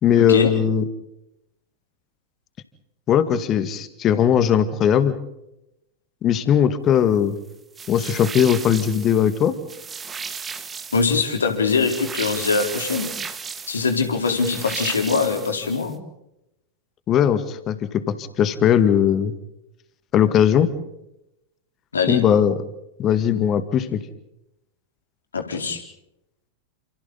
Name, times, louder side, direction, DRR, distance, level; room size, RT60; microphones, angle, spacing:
voice 1, 0.0-0.9 3.1-5.1 6.2-7.4 7.9-9.6 17.1-19.4 20.1-20.7 22.1-22.6 23.0-24.0, left 9 dB, 30° left, 12 dB, 2.0 m, -19 dB
sound 1, 7.8-15.9, right 6 dB, 20° right, 1.9 m, -35 dB
voice 2, 10.9-13.1 13.7-16.0 21.9-22.2 25.3-25.8, left 4 dB, 70° left, 4 dB, 4.0 m, -22 dB
29.5 x 28.0 x 4.1 m, 0.85 s
figure-of-eight pair, 90°, 0 cm